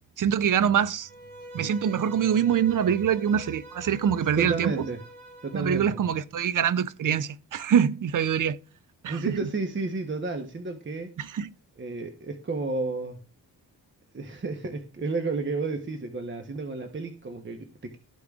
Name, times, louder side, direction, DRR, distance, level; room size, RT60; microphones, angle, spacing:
voice 1, 0.2-1.1 1.5-4.7 5.5-8.6 9.0-9.4 11.2-11.5, right 8 dB, 50° right, 0.5 m, -24 dB
Bowed string instrument, 1.0-6.0, right 1 dB, 75° right, 2.5 m, -45 dB
voice 2, 4.4-5.0 5.4-6.0 9.1-11.1 11.8-13.2 14.1-18.0, right 3 dB, 30° right, 1.0 m, -32 dB
13.5 x 4.9 x 2.4 m
cardioid pair, 60°, 40 cm